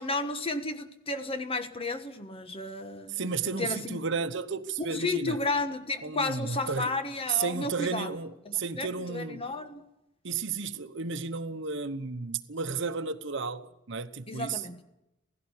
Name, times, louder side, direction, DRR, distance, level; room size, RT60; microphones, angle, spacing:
voice 1, 0.0-3.3 3.6-4.0 4.9-8.1 8.4-9.8 14.3-14.8, left 2 dB, 30° left, 1.3 m, -33 dB
voice 2, 3.1-5.4 6.0-6.9 7.3-9.4 10.2-14.6, right 5 dB, 60° right, 1.0 m, -33 dB
16.5 x 16.5 x 9.8 m
head